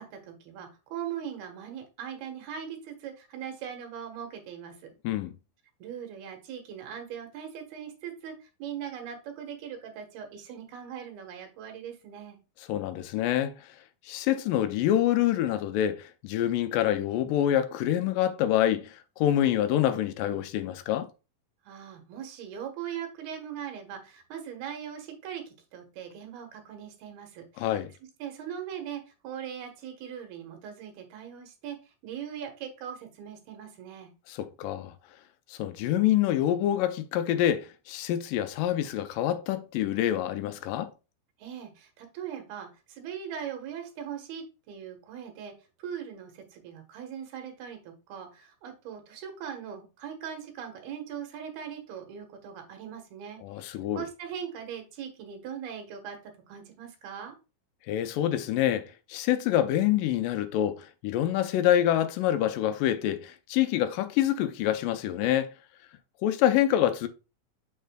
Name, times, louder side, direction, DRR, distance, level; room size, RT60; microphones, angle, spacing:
voice 1, 0.0-4.9 5.8-12.4 21.7-27.7 28.2-31.8 32.0-34.1 41.4-45.5 45.8-53.4 54.0-57.3, right 8 dB, 80° right, 3.1 m, -40 dB
voice 2, 12.7-13.6 14.1-21.1 27.6-27.9 34.3-34.9 35.5-40.9 53.4-54.0 57.9-65.5 66.2-67.1, left 12 dB, 80° left, 1.9 m, -26 dB
6.8 x 6.4 x 2.2 m
omnidirectional pair, 4.4 m